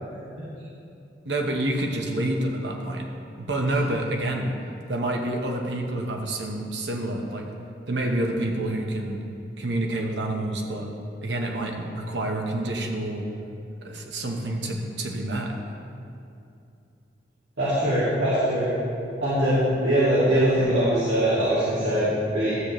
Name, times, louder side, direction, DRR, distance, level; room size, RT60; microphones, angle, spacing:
voice 1, 1.2-3.1 3.4-4.5 4.9-7.5 7.9-9.2 9.6-10.9 11.2-13.3 13.8-15.5, right 1 dB, 70° right, 1 dB, 1.1 m, -28 dB
voice 2, 17.6-18.7 19.2-22.6, right 1 dB, 85° right, -12 dB, 2.2 m, -22 dB
12.5 x 8.3 x 3.1 m, 2.6 s
head